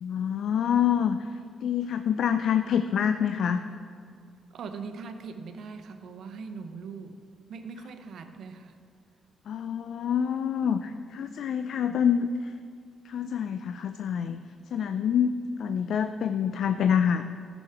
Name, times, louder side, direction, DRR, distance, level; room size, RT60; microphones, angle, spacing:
voice 1, 0.0-3.6 9.5-12.5 13.0-14.4 14.7-17.3, left 8 dB, 70° left, 9 dB, 0.3 m, -26 dB
voice 2, 4.5-7.2 7.5-8.8, right 5 dB, 70° right, 7 dB, 0.8 m, -40 dB
14.0 x 6.3 x 4.4 m, 2.2 s
supercardioid pair, 50°, 0 cm